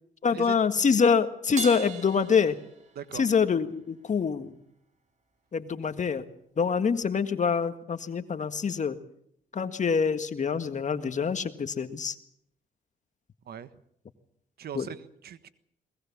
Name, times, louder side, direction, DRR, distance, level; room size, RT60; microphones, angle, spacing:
voice 1, 0.2-2.6 3.1-4.5 5.5-6.3 6.6-9.0 9.5-12.2 14.8-14.9, left 6 dB, 45° left, 10 dB, 1.8 m, -25 dB
Crash cymbal, 1.6-3.3, right 4 dB, 45° right, 5.6 m, -38 dB
voice 2, 14.6-15.5, right 9 dB, 65° right, 13 dB, 1.5 m, -40 dB
22.0 x 19.5 x 7.3 m, 0.70 s
supercardioid pair, 65°, 17 cm